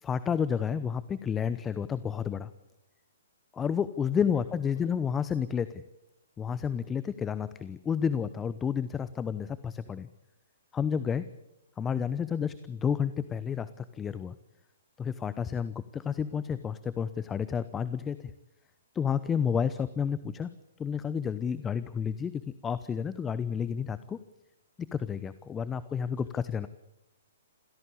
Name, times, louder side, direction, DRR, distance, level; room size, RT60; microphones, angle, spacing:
voice 1, 0.0-2.5 3.5-5.8 6.4-10.1 10.7-11.3 11.8-14.3 15.0-18.3 18.9-20.5 20.8-24.2 24.8-26.7, left 7 dB, 15° left, 15 dB, 0.9 m, -31 dB
voice 2, 4.1-5.0 26.4-26.7, left 2 dB, 60° left, 5 dB, 5.7 m, -51 dB
27.0 x 16.5 x 8.6 m, 0.90 s
figure-of-eight pair, 125°, 0 cm